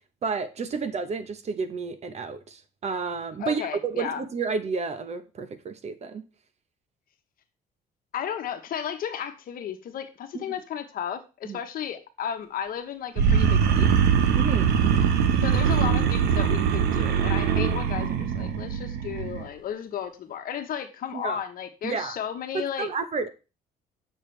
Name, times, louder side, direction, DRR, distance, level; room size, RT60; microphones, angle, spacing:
voice 1, 0.2-6.2 10.3-10.4 11.4-11.6 14.4-15.1 21.1-21.4 21.8-22.2 22.5-23.3, right 5 dB, 40° right, 11 dB, 1.0 m, -31 dB
voice 2, 3.4-4.2 8.1-14.0 15.4-22.9, left 9 dB, 55° left, 7 dB, 1.1 m, -34 dB
sound 1, 13.2-19.4, right 7 dB, 75° right, 1.1 m, -22 dB
8.6 x 6.5 x 3.3 m, 0.31 s
cardioid pair, 110°, 17 cm